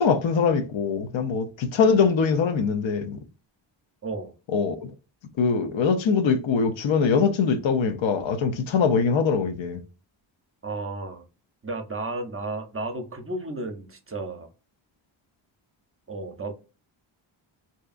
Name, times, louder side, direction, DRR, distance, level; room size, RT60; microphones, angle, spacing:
voice 1, 0.0-3.2 4.5-4.9 5.4-9.8, left 5 dB, 70° left, 0.6 m, -22 dB
voice 2, 4.0-4.3 10.6-11.2 11.6-14.5 16.1-16.5, right 2 dB, 30° right, 0.6 m, -33 dB
2.7 x 2.3 x 2.4 m
cardioid pair, 65°, 48 cm